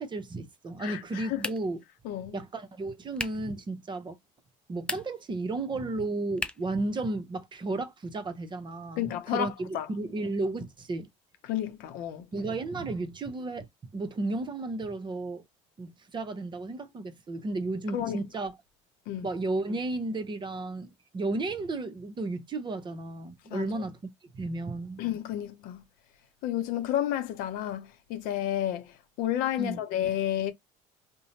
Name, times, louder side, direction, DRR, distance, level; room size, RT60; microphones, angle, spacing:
voice 1, 0.0-1.8 2.3-4.2 4.7-11.1 12.3-13.7 13.9-15.4 15.8-18.5 19.2-24.0 24.3-25.0 29.6-29.8, right 2 dB, 30° right, 0.8 m, -33 dB
voice 2, 0.8-1.4 2.0-2.4 9.0-9.5 9.7-9.9 11.5-12.3 17.9-18.2 19.1-19.3 23.5-23.7 25.0-25.8 26.4-30.5, left 11 dB, 65° left, 0.6 m, -31 dB
sound 1, 1.4-1.9 3.1-3.5 4.7-5.3 6.4-6.8, left 2 dB, 5° left, 0.4 m, -36 dB
2.7 x 2.1 x 2.8 m
supercardioid pair, 80°, 16 cm